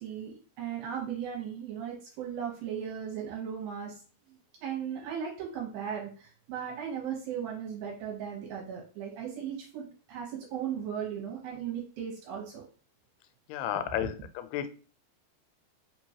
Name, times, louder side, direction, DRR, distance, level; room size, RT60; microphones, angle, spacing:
voice 1, 0.0-4.0 4.6-12.6, right 8 dB, 75° right, -1 dB, 2.7 m, -37 dB
voice 2, 13.5-14.7, left 11 dB, 90° left, 10 dB, 2.6 m, -32 dB
5.8 x 3.0 x 2.8 m, 0.38 s
omnidirectional pair, 4.5 m